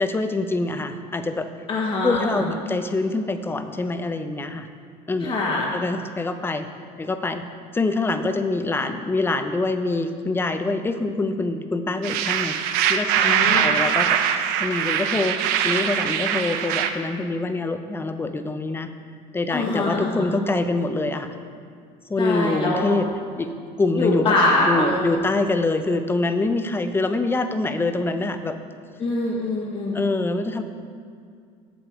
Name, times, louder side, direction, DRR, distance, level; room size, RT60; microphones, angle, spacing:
voice 1, 0.0-1.5 2.0-4.7 5.1-5.4 5.7-6.7 7.0-7.4 7.7-14.2 14.6-18.9 19.3-21.4 22.1-23.1 23.4-23.5 23.8-24.4 24.7-28.6 29.9-30.6, left 2 dB, 15° left, 9 dB, 0.5 m, -25 dB
voice 2, 1.7-2.5 5.2-5.7 13.2-13.7 19.5-20.3 22.2-23.0 24.0-25.2 29.0-30.1, left 2 dB, 35° left, -3 dB, 1.5 m, -23 dB
sound 1, 12.0-16.9, right 8 dB, 75° right, 0.6 m, -22 dB
7.5 x 6.9 x 4.7 m, 2.3 s
supercardioid pair, 110°, 15 cm